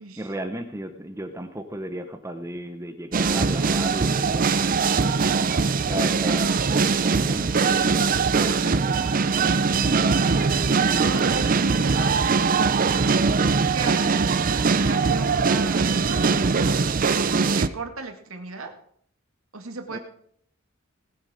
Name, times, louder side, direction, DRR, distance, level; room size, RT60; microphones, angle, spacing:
voice 1, 0.0-9.3 19.9-20.0, right 1 dB, 15° right, 8 dB, 1.0 m, -36 dB
sound 1, 3.1-17.7, right 4 dB, 40° right, 0.6 m, -21 dB
voice 2, 9.8-12.8 13.7-16.3 17.5-18.7 19.5-20.0, right 4 dB, 85° right, 5 dB, 2.1 m, -36 dB
18.5 x 8.2 x 4.9 m, 0.64 s
head